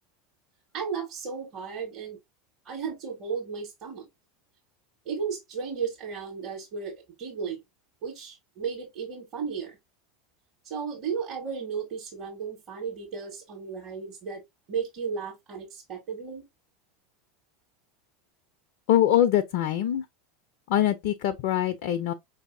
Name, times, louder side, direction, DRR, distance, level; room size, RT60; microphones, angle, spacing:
voice 1, 0.7-2.2 2.6-4.1 5.0-7.6 8.0-9.8 10.6-14.4 14.7-16.4, right 6 dB, 45° right, 1.4 m, -34 dB
voice 2, 18.9-20.1 20.7-22.1, left 11 dB, 60° left, 0.4 m, -23 dB
5.1 x 2.7 x 2.6 m
figure-of-eight pair, 80°, 0 cm